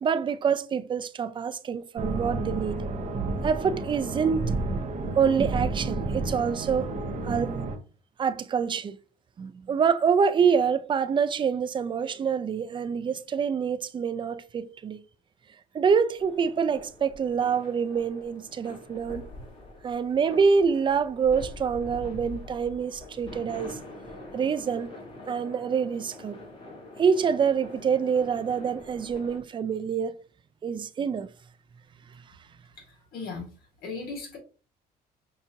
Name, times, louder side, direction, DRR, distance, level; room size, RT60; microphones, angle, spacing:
voice 1, 0.0-2.8 3.4-4.5 5.2-6.9 7.2-7.6 8.2-9.0 9.4-15.0 15.7-19.2 19.8-23.8 24.3-24.9 25.3-26.5 27.0-30.1 30.6-31.3, right 6 dB, 30° right, 0.4 m, -26 dB
sound 1, 2.0-7.8, right 3 dB, 45° right, 0.8 m, -31 dB
sound 2, 16.2-29.4, left 2 dB, 30° left, 1.6 m, -44 dB
voice 2, 32.8-33.5 33.8-34.4, left 4 dB, 65° left, 1.8 m, -37 dB
5.6 x 2.5 x 2.8 m
cardioid pair, 110°, 17 cm